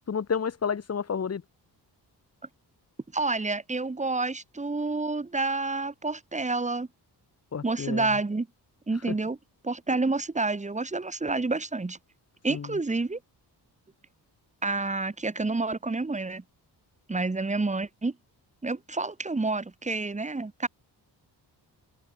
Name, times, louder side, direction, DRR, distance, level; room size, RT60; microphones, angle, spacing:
voice 1, 0.1-1.4 7.5-8.2 9.1-9.2 12.5-12.8, left 6 dB, 35° left, 1.5 m, -30 dB
voice 2, 3.1-6.9 7.6-8.5 8.9-9.4 9.6-12.0 12.4-13.2 14.6-16.4 17.1-18.1 18.6-20.7, right 3 dB, 15° right, 2.1 m, -29 dB
open air
wide cardioid pair, 135°, 41 cm